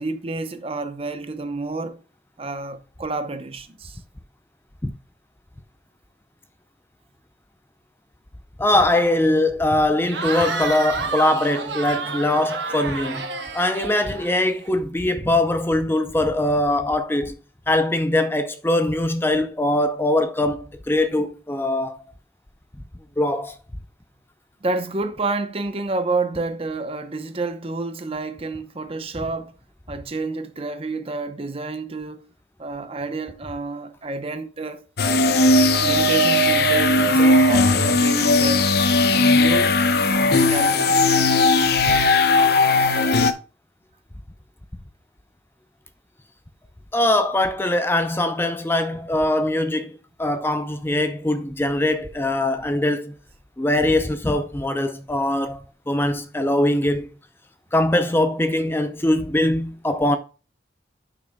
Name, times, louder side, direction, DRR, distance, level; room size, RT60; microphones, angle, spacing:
voice 1, 0.0-2.0 2.4-4.0 24.6-29.5 29.9-32.2 32.6-34.8 35.8-38.7 39.1-39.8 40.1-41.3, right 3 dB, 35° right, 0.8 m, -29 dB
voice 2, 8.6-13.3 13.5-17.3 17.7-22.0 23.2-23.6 41.9-42.0 46.9-49.9 50.2-53.1 53.6-55.6 55.9-57.1 57.7-60.2, left 1 dB, 15° left, 0.5 m, -22 dB
Cheering / Crowd, 10.0-14.7, right 4 dB, 85° right, 1.4 m, -30 dB
sound 1, 35.0-43.3, left 2 dB, 60° left, 0.8 m, -17 dB
10.0 x 6.1 x 2.2 m
head